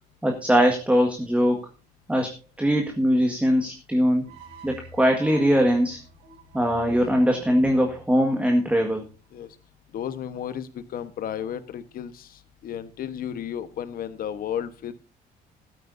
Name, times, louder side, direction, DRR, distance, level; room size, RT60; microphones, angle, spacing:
voice 1, 0.2-1.7 2.1-4.2 4.6-6.0 6.5-9.1, equal, 5° right, 2 dB, 1.8 m, -21 dB
sound 1, 4.2-9.5, right 3 dB, 75° right, 3.6 m, -48 dB
voice 2, 9.9-14.9, left 9 dB, 60° left, 11 dB, 1.3 m, -33 dB
15.0 x 12.5 x 2.7 m, 0.31 s
cardioid pair, 110°, 17 cm